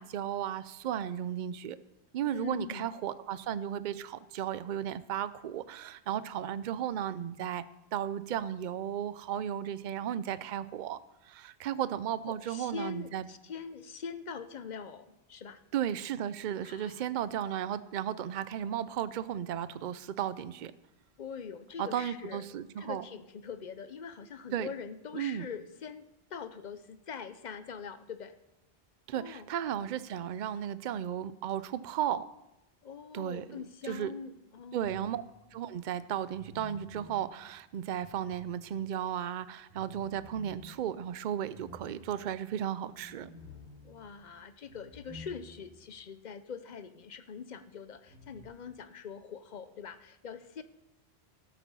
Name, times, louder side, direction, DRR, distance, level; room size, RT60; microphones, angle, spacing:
voice 1, 0.0-1.8 2.1-7.6 7.9-11.0 11.2-13.3 15.7-20.7 21.8-23.1 24.5-24.7 25.1-25.4 29.1-32.3 33.1-34.1 34.7-35.2 35.5-43.3, right 10 dB, 55° right, 16 dB, 0.6 m, -35 dB
voice 2, 2.3-2.9 12.3-15.6 16.6-17.0 21.2-22.4 22.8-26.1 26.3-28.3 29.1-29.5 32.8-35.2 43.8-50.6, left 6 dB, 50° left, 12 dB, 0.7 m, -43 dB
sound 1, 34.8-35.5 36.3-39.0 39.7-45.9 46.2-46.3 48.0-48.4, left 2 dB, 75° left, 4.5 m, -52 dB
13.0 x 8.2 x 5.5 m, 0.92 s
omnidirectional pair, 1.1 m